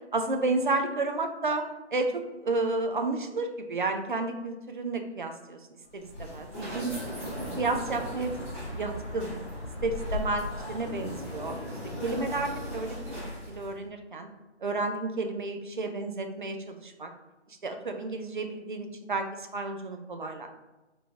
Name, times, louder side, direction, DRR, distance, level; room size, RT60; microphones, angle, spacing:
voice 1, 0.1-1.6 1.9-5.6 5.9-6.9 7.6-8.3 8.7-9.3 9.8-11.6 12.0-14.3 14.6-17.1 17.5-20.5, right 3 dB, 45° right, 5 dB, 0.5 m, -31 dB
sound 1, 5.9-13.7, left 1 dB, 10° right, 1.0 m, -37 dB
5.1 x 3.7 x 2.4 m, 1.1 s
figure-of-eight pair, 155°, 35 cm